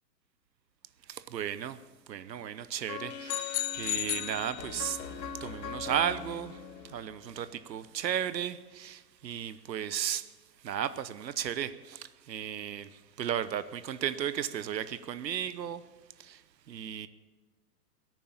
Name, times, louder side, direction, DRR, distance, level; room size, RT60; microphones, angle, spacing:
voice 1, 1.0-15.9 16.2-17.1, right 9 dB, 90° right, 0.9 m, -35 dB
sound 1, 2.9-7.9, left 6 dB, 80° left, 2.0 m, -42 dB
sound 2, 3.3-5.1, left 14 dB, 25° left, 0.9 m, -34 dB
17.0 x 9.3 x 7.1 m
hypercardioid pair, 130°, 49 cm